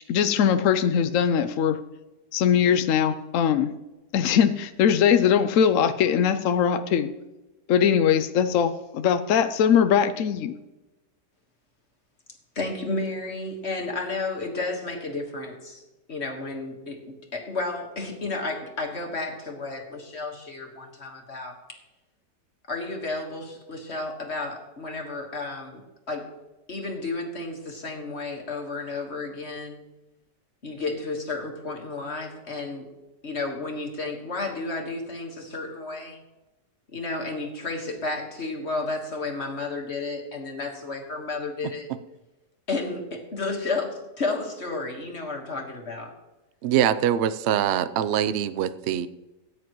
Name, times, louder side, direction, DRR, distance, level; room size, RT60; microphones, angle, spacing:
voice 1, 0.1-1.8 2.3-3.7 4.1-7.1 7.7-10.5, left 8 dB, 65° left, 10 dB, 0.8 m, -21 dB
voice 2, 12.6-15.8 16.1-21.8 22.7-25.8 26.1-26.3 26.7-29.8 30.6-32.9 33.2-36.2 36.9-41.9 42.7-46.1, left 3 dB, 40° left, 1 dB, 1.8 m, -32 dB
voice 3, 46.6-49.1, right 10 dB, 70° right, 13 dB, 0.6 m, -23 dB
18.5 x 9.5 x 3.1 m, 1.0 s
omnidirectional pair, 1.8 m